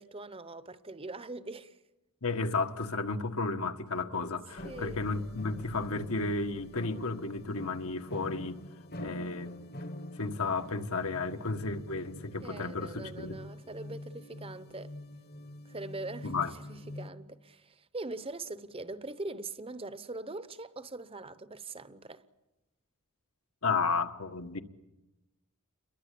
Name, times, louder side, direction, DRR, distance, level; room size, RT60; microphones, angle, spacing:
voice 1, 0.0-1.8 4.6-5.0 12.4-15.0 15.6-22.2, right 2 dB, 25° right, 0.8 m, -42 dB
voice 2, 2.2-8.6 9.0-9.6 10.2-13.4 16.2-16.5 23.6-24.6, left 3 dB, 75° left, 1.6 m, -33 dB
sound 1, 4.6-17.1, left 1 dB, 45° left, 1.3 m, -45 dB
29.5 x 22.5 x 8.5 m
head